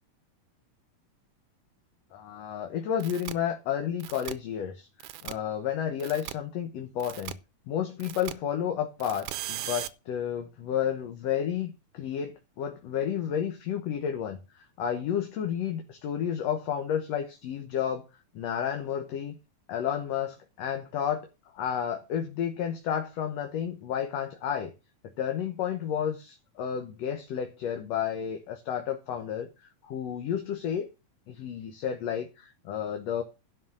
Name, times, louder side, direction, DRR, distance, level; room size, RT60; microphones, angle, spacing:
voice 1, 2.1-4.9 5.2-7.4 7.7-18.0 18.4-19.4 19.7-21.3 21.5-24.7 25.2-30.9 31.3-33.2, left 9 dB, 65° left, 2.1 m, -31 dB
sound 1, 3.0-3.3 4.0-4.3 5.0-5.3 6.0-6.3 7.0-7.3 8.0-8.3 9.0-9.9, right 12 dB, 70° right, 1.4 m, -37 dB
11.5 x 4.8 x 7.6 m
omnidirectional pair, 3.3 m